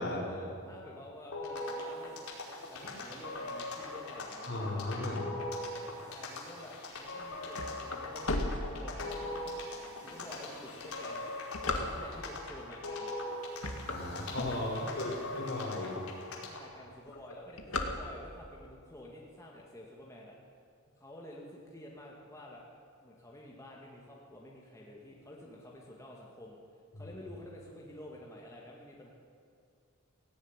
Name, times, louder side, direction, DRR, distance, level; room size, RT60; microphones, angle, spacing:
voice 1, 0.2-2.3 2.7-4.9 5.9-9.5 10.0-11.2 11.6-13.2 14.5-15.2 16.5-20.3 21.0-22.6 23.0-26.6 27.0-29.1, left 1 dB, 15° left, -3 dB, 2.2 m, -50 dB
sound 1, 1.3-16.7, left 2 dB, 90° left, 4.6 m, -41 dB
voice 2, 4.4-5.2 13.9-15.9 26.9-27.2, left 1 dB, 55° left, 1 dB, 4.2 m, -36 dB
sound 2, 7.1-9.3 9.9-10.0 10.7-12.4 13.0-13.2 13.5-15.1 15.6-15.7 15.9-16.0 16.3-16.6 16.9-18.5, left 2 dB, 75° left, 2.1 m, -36 dB
17.5 x 17.0 x 9.8 m, 2.2 s
head